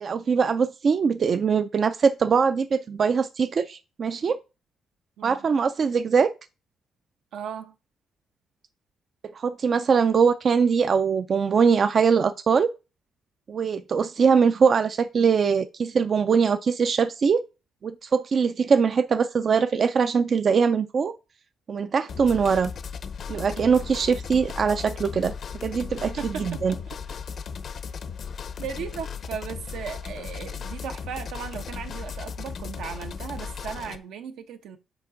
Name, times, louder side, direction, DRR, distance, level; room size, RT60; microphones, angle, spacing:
voice 1, 0.0-4.4 5.2-6.3 9.3-12.7 13.5-17.4 17.8-21.1 21.7-22.7 23.3-25.3 25.6-26.7, right 6 dB, 50° right, 0.4 m, -22 dB
voice 2, 7.3-7.7 23.6-23.7 26.2-27.0 28.6-34.8, right 7 dB, 80° right, 0.8 m, -36 dB
sound 1, 22.1-34.0, left 6 dB, 55° left, 0.6 m, -36 dB
7.0 x 4.2 x 3.8 m
cardioid pair, 90°, 0 cm